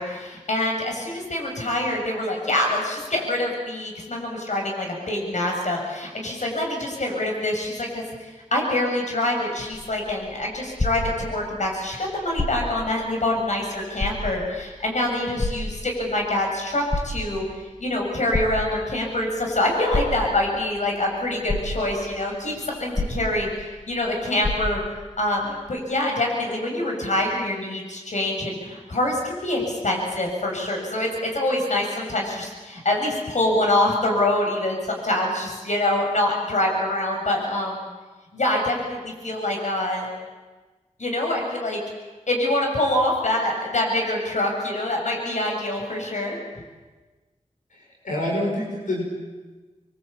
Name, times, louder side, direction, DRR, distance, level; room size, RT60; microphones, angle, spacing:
voice 1, 0.0-17.5 17.8-24.8 25.2-37.9 38.3-40.1 41.0-41.8 42.3-46.4, left 1 dB, 65° left, 1 dB, 7.5 m, -25 dB
sound 1, 9.6-11.7 12.3-12.9 13.4-13.5 13.9-14.7 15.4-16.2 16.7-17.6 18.3-19.1 19.9-20.6 21.1-21.2 21.5-22.2 22.9-23.8 24.0-24.1 24.4-25.1 25.8-25.9, left 2 dB, 30° left, 2.5 m, -28 dB
voice 2, 47.7-49.0, left 1 dB, 90° left, -2 dB, 6.7 m, -27 dB
27.5 x 24.0 x 8.7 m, 1.3 s
wide cardioid pair, 55°, 13 cm